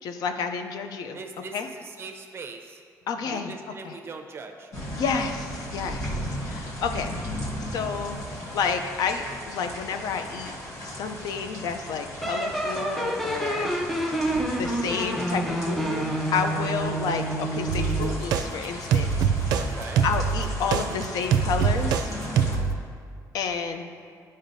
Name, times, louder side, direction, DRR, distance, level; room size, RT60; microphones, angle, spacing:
voice 1, 0.0-1.2 1.5-1.7 3.1-3.5 3.9-4.0 5.0-6.1 6.4-7.1 7.7-8.2 8.5-10.5 10.8-13.7 14.6-16.1 16.3-19.1 20.0-22.1 23.3-23.9, left 5 dB, 80° left, 6 dB, 0.6 m, -30 dB
voice 2, 1.1-2.8 3.3-4.7 19.6-20.0, right 4 dB, 40° right, 4 dB, 0.7 m, -40 dB
sound 1, 4.7-22.6, equal, 55° left, 1.4 m, -37 dB
sound 2, 12.2-18.2, right 1 dB, ahead, 0.5 m, -28 dB
sound 3, 17.7-18.5 18.9-19.7 20.0-22.1 22.4-22.8, right 7 dB, 90° right, 0.4 m, -24 dB
11.5 x 5.1 x 2.7 m, 2.2 s
cardioid pair, 130°, 6 cm